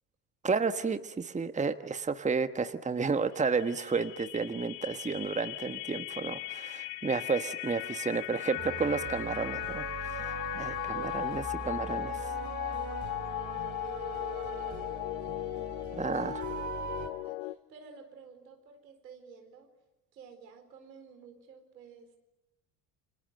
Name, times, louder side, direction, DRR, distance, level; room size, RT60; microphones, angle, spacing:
voice 1, 0.4-12.1 15.9-16.4, right 4 dB, 15° right, 10 dB, 1.4 m, -32 dB
sound 1, 3.3-17.5, left 21 dB, 65° left, 1.1 m, -38 dB
sound 2, 8.6-17.1, right 5 dB, 35° right, 4.1 m, -41 dB
voice 2, 10.1-11.8 12.1-15.1 15.9-16.2 16.7-19.7 20.1-22.1, right 5 dB, 85° right, 6 dB, 4.5 m, -54 dB
29.0 x 25.5 x 7.8 m, 0.94 s
hypercardioid pair, 70°, 48 cm